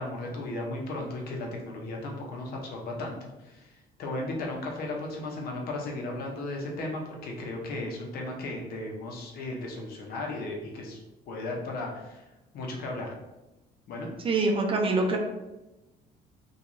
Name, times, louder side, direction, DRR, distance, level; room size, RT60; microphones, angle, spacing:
voice 1, 0.0-3.1 3.4-3.7 4.0-11.0 11.3-12.2 12.5-13.1 13.9-14.1, left 2 dB, 65° left, 0 dB, 0.7 m, -35 dB
voice 2, 14.2-15.2, right 3 dB, 35° right, 2 dB, 0.5 m, -24 dB
2.3 x 2.3 x 2.9 m, 1.0 s
cardioid pair, 110°, 17 cm